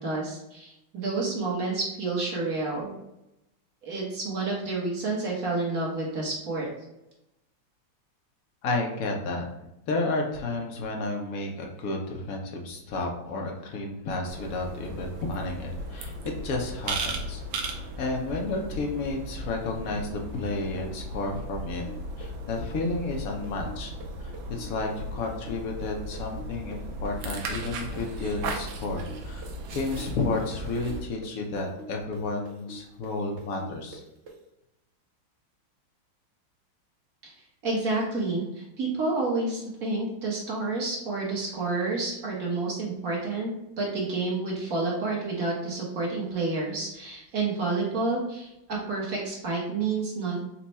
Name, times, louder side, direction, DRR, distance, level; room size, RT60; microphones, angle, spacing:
voice 1, 0.0-2.9 3.8-6.7 37.2-37.3 37.6-43.5 43.8-50.4, right 3 dB, 50° right, -4 dB, 1.3 m, -29 dB
voice 2, 8.6-9.5 9.9-16.1 16.4-21.8 22.2-23.9 24.2-34.0, left 2 dB, 65° left, 1 dB, 0.8 m, -32 dB
sound 1, 14.3-31.0, right 1 dB, 85° right, 1.4 m, -37 dB
sound 2, 21.9-29.5 29.8-34.4, right 2 dB, 70° right, 0.6 m, -44 dB
4.3 x 2.2 x 4.0 m, 0.87 s
omnidirectional pair, 2.2 m